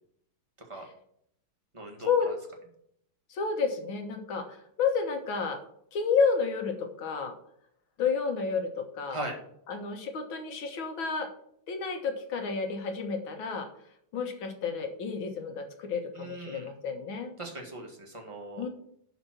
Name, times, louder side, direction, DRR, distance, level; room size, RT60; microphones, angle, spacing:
voice 1, 1.7-2.3 9.1-9.4 16.1-16.7 17.4-18.6, right 2 dB, 15° right, 1 dB, 1.9 m, -39 dB
voice 2, 3.3-5.6 5.9-7.3 8.0-9.2 9.7-11.3 11.7-13.7 14.1-17.3 18.6-18.7, left 5 dB, 80° left, 5 dB, 2.1 m, -30 dB
11.0 x 4.1 x 6.0 m, 0.69 s
omnidirectional pair, 2.1 m